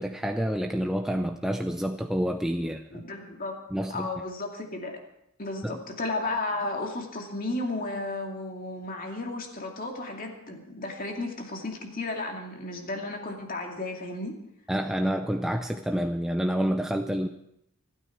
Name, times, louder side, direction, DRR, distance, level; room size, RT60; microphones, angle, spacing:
voice 1, 0.0-3.0 3.7-4.1 5.6-5.8 14.7-17.3, equal, ahead, 4 dB, 0.5 m, -28 dB
voice 2, 2.9-3.6 3.9-5.0 5.4-14.4, left 2 dB, 40° left, 2 dB, 2.5 m, -33 dB
27.5 x 9.4 x 4.7 m, 0.78 s
head